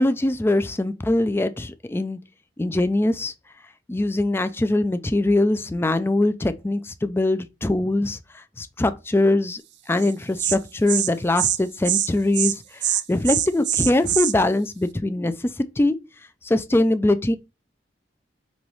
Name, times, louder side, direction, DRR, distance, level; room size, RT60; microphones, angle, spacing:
voice 1, 0.0-2.2 2.6-3.3 3.9-9.6 9.9-12.6 12.9-15.5 15.8-16.0 16.4-17.4, left 2 dB, 15° left, 0.4 m, -22 dB
Insect, 10.0-10.1 10.4-10.6 10.9-11.1 11.4-11.6 11.8-12.1 12.3-12.5 12.8-14.3, right 11 dB, 85° right, 0.5 m, -23 dB
5.3 x 3.0 x 3.1 m
head